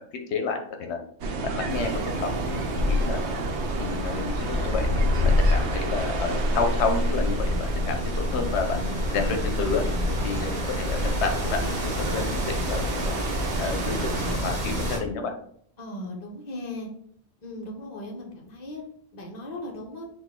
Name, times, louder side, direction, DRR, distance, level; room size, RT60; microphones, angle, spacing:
voice 1, 0.3-1.0 1.4-3.2 3.8-8.8 9.1-9.8 10.2-13.1 13.6-15.3, left 4 dB, 85° left, 5 dB, 0.9 m, -30 dB
sound 1, 1.2-14.3, right 3 dB, 85° right, 0.9 m, -32 dB
sound 2, 1.7-15.0, equal, 50° right, 0.9 m, -32 dB
sound 3, 2.8-11.6, left 2 dB, 70° left, 1.2 m, -27 dB
voice 2, 15.8-16.9 17.4-18.8 19.1-20.1, left 1 dB, 40° left, -1 dB, 0.9 m, -37 dB
4.1 x 2.2 x 3.6 m, 0.65 s
omnidirectional pair, 1.1 m